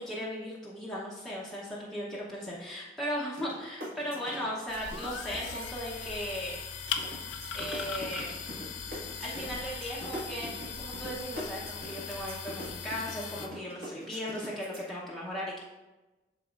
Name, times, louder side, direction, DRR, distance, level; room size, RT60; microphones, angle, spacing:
voice 1, 0.0-6.6 7.5-8.4 9.2-10.5 10.8-15.6, equal, ahead, -7 dB, 0.8 m, -37 dB
sound 1, 3.4-3.6 3.8-6.4 6.9-14.8, equal, 55° right, 1.8 m, -42 dB
sound 2, 4.7-13.5, left 6 dB, 90° left, 0.6 m, -39 dB
12.0 x 4.1 x 2.5 m, 1.1 s
head